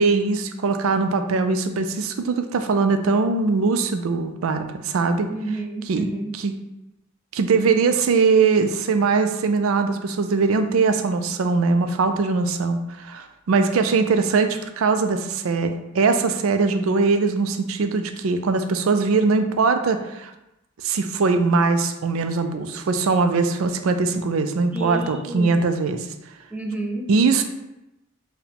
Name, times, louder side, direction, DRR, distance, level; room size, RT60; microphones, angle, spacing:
voice 1, 0.0-5.3 5.9-6.1 6.4-6.5 7.3-20.3 20.8-26.0 27.1-27.4, right 4 dB, 80° right, 8 dB, 0.4 m, -21 dB
voice 2, 5.3-6.4 24.7-25.6 26.5-27.1, right 2 dB, 5° right, -1 dB, 0.5 m, -30 dB
4.7 x 2.2 x 3.4 m, 0.91 s
head